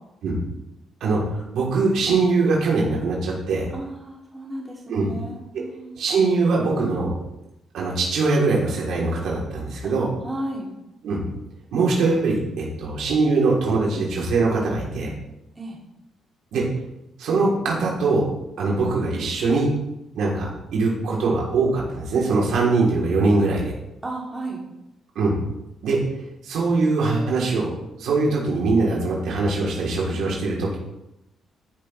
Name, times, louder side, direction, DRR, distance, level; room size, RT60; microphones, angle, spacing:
voice 1, 1.0-3.7 4.9-5.1 6.0-7.1 7.7-10.1 11.0-11.2 11.7-15.1 16.5-16.6 17.2-18.3 18.6-19.7 20.1-23.7 25.1-25.3 25.8-26.0 26.4-27.7 28.0-30.8, right 3 dB, 75° right, -3 dB, 3.4 m, -22 dB
voice 2, 3.7-6.0 9.8-9.9 10.2-10.7 15.6-15.8 24.0-24.6, right 1 dB, 20° right, -3 dB, 2.8 m, -33 dB
14.0 x 6.8 x 3.3 m, 0.90 s
cardioid pair, 90°, 0 cm